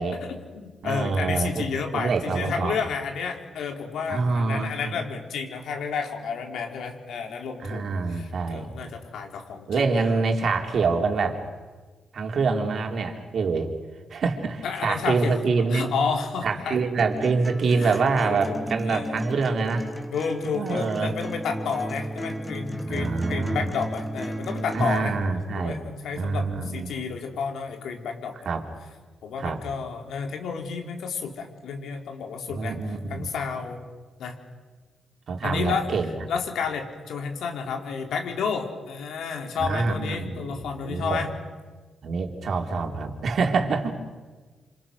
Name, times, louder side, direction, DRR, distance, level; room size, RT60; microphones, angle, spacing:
voice 1, 0.2-10.2 14.6-15.4 15.7-16.8 17.7-19.2 20.1-25.2 25.6-28.4 29.2-33.8 34.2-34.4 35.4-35.9 36.3-41.3, left 5 dB, 80° left, 3 dB, 3.9 m, -31 dB
voice 2, 0.8-1.7 1.9-2.8 4.1-5.0 7.6-8.7 9.7-11.4 12.1-13.7 14.1-15.9 16.4-19.8 20.5-21.1 22.8-23.7 24.7-25.8 26.2-26.9 28.5-28.6 29.4-29.6 32.5-33.3 35.3-36.1 39.6-41.2 42.0-43.9, right 4 dB, 65° right, 3 dB, 3.8 m, -26 dB
sound 1, 17.0-25.0, right 1 dB, 5° left, 2.9 m, -34 dB
27.5 x 27.5 x 6.5 m, 1.4 s
cardioid pair, 80°, 0 cm